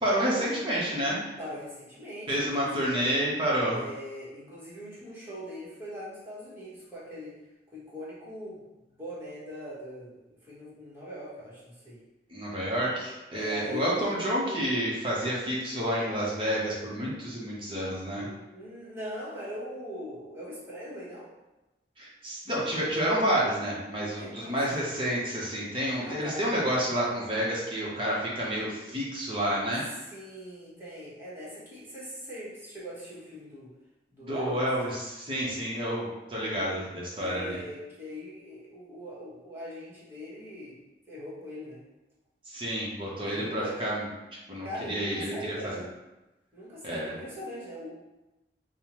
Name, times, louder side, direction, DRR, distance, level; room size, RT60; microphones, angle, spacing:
voice 1, 0.0-1.2 2.3-3.8 12.3-18.3 22.0-29.8 34.2-37.6 42.5-44.0 44.5-45.7 46.8-47.1, equal, 30° right, -6 dB, 0.8 m, -29 dB
voice 2, 1.4-2.9 3.7-7.4 7.7-8.6 9.0-12.0 13.3-14.2 18.1-21.3 24.1-24.8 26.0-26.5 30.0-33.7 34.1-34.7 37.2-40.8 41.1-41.8 43.2-43.9 44.6-45.9 46.5-47.9, equal, 15° right, -9 dB, 1.2 m, -41 dB
5.3 x 2.1 x 3.0 m, 1.0 s
head